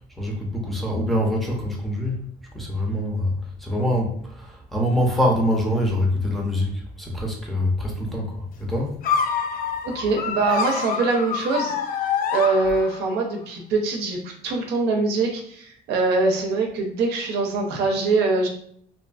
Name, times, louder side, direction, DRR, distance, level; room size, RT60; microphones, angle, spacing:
voice 1, 0.2-2.2 2.5-3.3 3.6-8.3 8.6-9.0, left 1 dB, ahead, -2 dB, 0.6 m, -24 dB
sound 1, 9.0-13.2, left 6 dB, 60° left, 0.4 m, -26 dB
voice 2, 9.8-11.7 12.3-18.5, right 3 dB, 80° right, 1 dB, 0.6 m, -23 dB
2.6 x 2.5 x 2.3 m, 0.62 s
cardioid pair, 110°, 17 cm